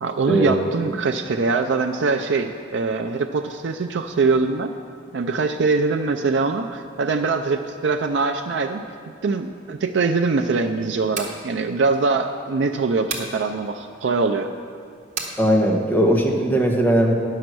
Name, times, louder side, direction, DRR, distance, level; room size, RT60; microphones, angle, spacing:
voice 1, 0.0-4.7 5.1-8.8 9.2-14.5, right 4 dB, 75° right, 5 dB, 0.4 m, -23 dB
sound 1, 11.1-11.4 13.1-13.4 15.2-15.4, right 5 dB, 40° right, 1.2 m, -30 dB
voice 2, 15.4-17.1, right 1 dB, 10° left, 0 dB, 1.1 m, -18 dB
10.5 x 6.5 x 6.1 m, 2.4 s
head